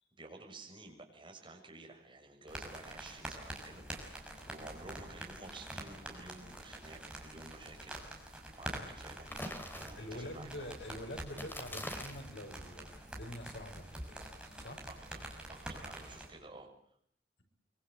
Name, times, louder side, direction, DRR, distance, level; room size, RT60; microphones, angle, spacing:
voice 1, 0.2-9.3 9.7-10.7 14.9-16.7, right 2 dB, 30° right, 1 dB, 6.8 m, -52 dB
sound 1, 2.5-16.3, right 1 dB, 5° right, 5.9 m, -46 dB
sound 2, 9.3-10.3 11.3-12.3, left 1 dB, 10° left, 3.4 m, -43 dB
voice 2, 10.0-14.9, left 1 dB, 85° left, 4 dB, 5.8 m, -46 dB
24.5 x 24.5 x 7.8 m, 0.67 s
head